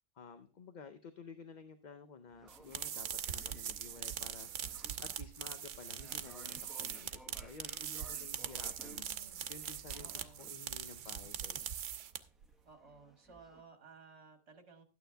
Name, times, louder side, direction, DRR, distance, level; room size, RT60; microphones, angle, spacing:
voice 1, 0.1-11.6, left 4 dB, 45° left, 10 dB, 0.7 m, -53 dB
sound 1, 2.3-13.6, right 1 dB, ahead, 0.7 m, -61 dB
sound 2, 2.5-12.5, right 9 dB, 85° right, 1.0 m, -42 dB
voice 2, 8.8-9.4 10.0-10.5 12.6-14.8, right 4 dB, 60° right, 7 dB, 1.9 m, -57 dB
12.0 x 9.2 x 3.4 m, 0.34 s
omnidirectional pair, 1.3 m